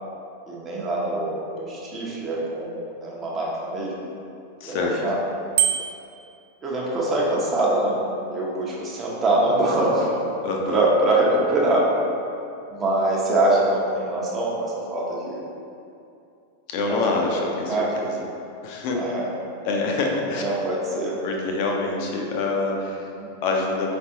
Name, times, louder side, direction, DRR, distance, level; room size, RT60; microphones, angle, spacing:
voice 1, 0.5-4.0 4.6-5.2 6.6-8.0 8.3-10.2 10.7-12.0 12.7-15.4 16.9-17.4 17.6-18.0 18.9-19.3 20.3-21.2 23.1-23.3, right 2 dB, 25° right, -4 dB, 0.8 m, -24 dB
voice 2, 4.6-5.0 10.4-10.9 16.7-18.1 18.6-19.0 19.6-20.4 21.2-23.1 23.4-23.9, left 3 dB, 45° left, 0 dB, 0.5 m, -26 dB
Bicycle bell, 5.6-6.2, right 10 dB, 50° right, 0.3 m, -23 dB
5.0 x 3.3 x 2.7 m, 2.6 s
figure-of-eight pair, 90°, 0 cm